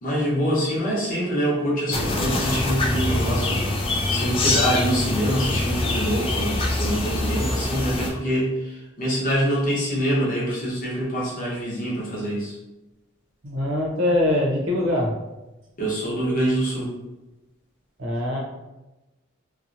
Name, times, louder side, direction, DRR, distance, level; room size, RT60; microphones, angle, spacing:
voice 1, 0.0-3.7 4.1-12.6 15.8-16.9, equal, 45° left, -6 dB, 0.9 m, -25 dB
sound 1, 1.9-8.1, left 2 dB, 25° left, 0.4 m, -24 dB
voice 2, 13.4-15.1 18.0-18.4, left 1 dB, 80° right, -2 dB, 0.8 m, -23 dB
2.7 x 2.4 x 2.6 m, 1.0 s
head